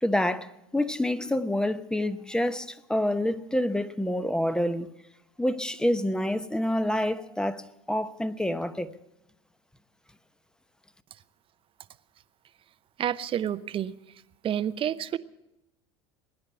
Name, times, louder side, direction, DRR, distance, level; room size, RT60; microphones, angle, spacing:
voice 1, 0.0-4.9 5.4-8.9, left 1 dB, 5° left, 0.9 m, -27 dB
voice 2, 13.0-14.0 14.4-15.2, right 10 dB, 40° right, 0.8 m, -29 dB
20.5 x 10.0 x 6.9 m
hypercardioid pair, 75°, 14 cm